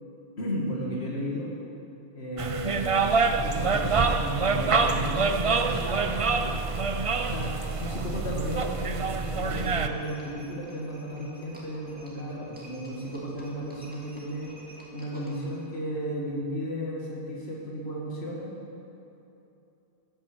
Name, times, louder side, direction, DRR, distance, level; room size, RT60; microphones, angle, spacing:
voice 1, 0.4-1.5 2.1-6.7 7.2-14.5 14.9-18.5, equal, 65° left, -4 dB, 2.6 m, -34 dB
sound 1, 2.4-9.9, right 4 dB, 40° right, 0.6 m, -26 dB
Livestock farm animals working animals, 7.5-15.6, equal, 10° right, 2.5 m, -51 dB
15.0 x 10.5 x 6.9 m, 2.9 s
omnidirectional pair, 1.1 m